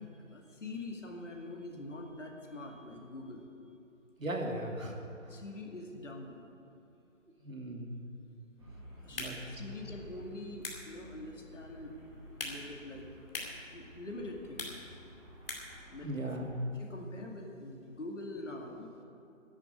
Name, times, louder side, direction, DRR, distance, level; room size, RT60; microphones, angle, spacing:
voice 1, 0.0-3.5 5.1-6.5 7.8-7.9 8.6-12.0 12.2-13.3 13.7-14.8 15.9-16.4 16.7-18.9, left 2 dB, 65° left, 1 dB, 2.4 m, -45 dB
voice 2, 4.2-5.0 7.4-8.0 9.1-9.3 16.0-16.5, right 1 dB, 85° right, 1 dB, 2.6 m, -37 dB
Traffic noise roadway noise, 8.6-16.6, equal, 20° right, 1.8 m, -54 dB
sound 1, 9.0-15.9, left 2 dB, 45° left, 2.4 m, -46 dB
10.5 x 8.8 x 9.5 m, 2.9 s
figure-of-eight pair, 170°, 39 cm